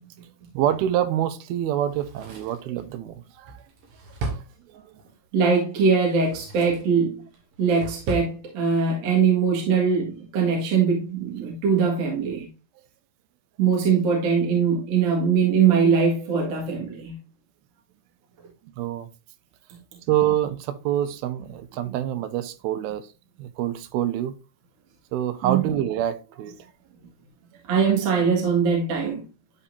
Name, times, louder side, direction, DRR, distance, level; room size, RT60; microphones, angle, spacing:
voice 1, 0.5-3.6 4.3-4.4 4.7-4.9 18.8-19.1 20.1-23.1 23.4-24.4 25.1-26.6, right 11 dB, 85° right, 2.4 m, -26 dB
Drawer open or close, 1.8-5.1 6.0-6.9 7.3-8.3 8.6-8.7, right 3 dB, 65° right, 3.1 m, -36 dB
voice 2, 5.3-7.2 7.6-12.5 13.6-17.1 25.4-25.6 27.7-29.2, right 6 dB, 50° right, 2.5 m, -21 dB
11.0 x 4.2 x 2.6 m
omnidirectional pair, 4.4 m